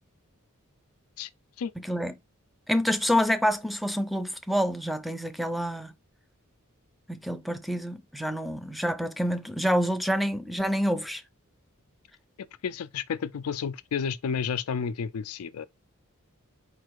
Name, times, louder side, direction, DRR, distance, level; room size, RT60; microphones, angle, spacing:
voice 1, 1.8-2.1 2.7-5.9 7.1-11.2, equal, ahead, 0.4 m, -27 dB
voice 2, 12.6-15.6, left 6 dB, 80° left, 0.4 m, -31 dB
4.6 x 2.4 x 4.6 m
head